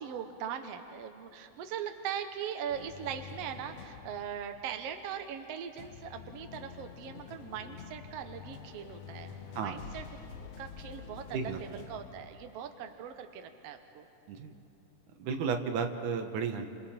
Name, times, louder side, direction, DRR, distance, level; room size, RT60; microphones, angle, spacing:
voice 1, 0.0-14.1, right 8 dB, 65° right, 6 dB, 1.9 m, -40 dB
sound 1, 2.7-5.4 5.8-12.5, left 7 dB, 70° left, 2.1 m, -48 dB
voice 2, 15.2-16.7, right 6 dB, 85° right, 5 dB, 2.6 m, -33 dB
29.5 x 27.0 x 4.4 m, 2.8 s
omnidirectional pair, 3.4 m